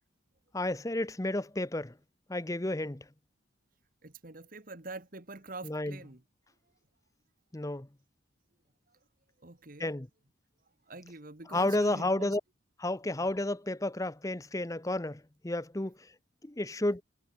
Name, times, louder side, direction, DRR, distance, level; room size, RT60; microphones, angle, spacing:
voice 1, 0.5-1.9 2.3-3.1 5.6-6.0 7.5-7.9 9.8-10.1 11.5-12.4 12.8-16.1 16.4-17.0, left 1 dB, 15° left, 0.8 m, -31 dB
voice 2, 4.0-6.2 8.9-9.0 9.4-9.9 10.9-12.4, right 2 dB, 45° right, 1.8 m, -45 dB
head